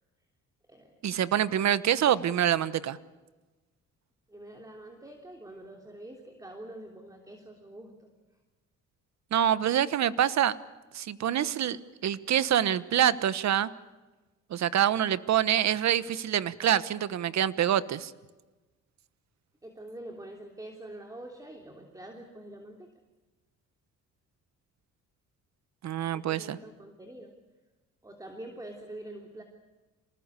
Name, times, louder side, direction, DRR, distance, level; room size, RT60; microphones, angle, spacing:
voice 1, 1.0-3.0 9.3-10.6 10.9-13.7 14.5-18.1 25.8-26.6, right 10 dB, 65° right, 16 dB, 1.2 m, -26 dB
voice 2, 4.3-8.1 19.6-22.9 26.1-27.3 28.0-29.4, right 1 dB, 10° right, 2 dB, 3.3 m, -45 dB
26.5 x 20.0 x 8.2 m, 1.2 s
cardioid pair, 90°, 30 cm